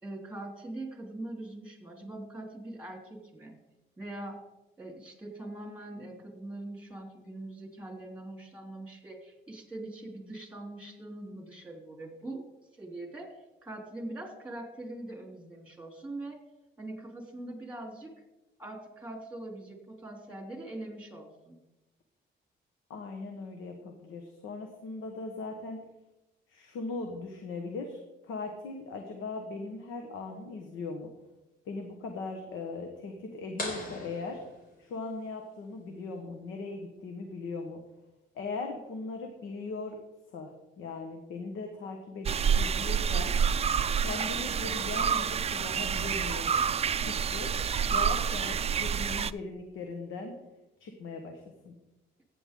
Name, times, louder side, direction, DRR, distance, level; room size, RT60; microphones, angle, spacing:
voice 1, 0.0-3.5 4.0-4.4 4.8-13.3 13.6-16.4 16.8-18.1 18.6-21.6, right 1 dB, 5° right, 1 dB, 3.5 m, -42 dB
voice 2, 22.9-25.8 26.5-28.0 28.3-31.1 31.7-34.4 34.8-37.8 38.3-40.0 40.3-40.5 40.8-43.3 44.0-46.5 47.0-47.5 47.9-50.3 50.8-51.7, left 3 dB, 85° left, 4 dB, 1.4 m, -39 dB
sound 1, 33.6-35.3, left 1 dB, 45° left, 4.0 m, -40 dB
sound 2, 42.3-49.3, right 7 dB, 30° right, 0.4 m, -28 dB
14.5 x 9.2 x 3.8 m, 0.99 s
cardioid pair, 90°, 20 cm